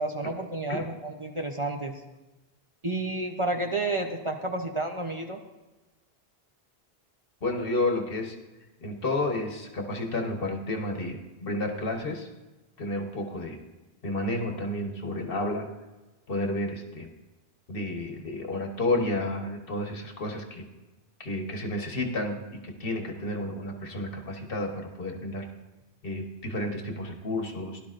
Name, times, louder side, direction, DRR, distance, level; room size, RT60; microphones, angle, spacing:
voice 1, 0.0-1.9 2.8-5.4, right 2 dB, 35° right, 3 dB, 0.8 m, -30 dB
voice 2, 7.4-8.4 8.8-12.3 12.8-13.6 14.0-15.7 16.3-17.1 17.7-20.6 21.2-22.4 22.6-25.5 26.0-27.8, left 2 dB, 65° left, 3 dB, 1.4 m, -31 dB
17.0 x 11.5 x 2.5 m, 1.1 s
omnidirectional pair, 1.0 m